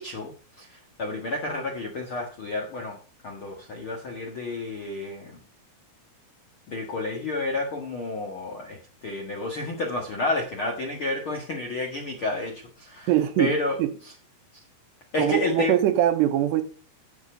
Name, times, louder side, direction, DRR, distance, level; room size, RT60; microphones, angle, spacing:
voice 1, 0.0-3.0 3.2-5.4 6.7-13.1 13.4-13.8 14.0-14.1 15.1-15.8, left 2 dB, 60° left, 1.3 m, -30 dB
voice 2, 13.1-13.5 13.8-13.9 15.2-16.6, right 12 dB, 85° right, 3.1 m, -22 dB
9.4 x 8.5 x 5.1 m
omnidirectional pair, 4.9 m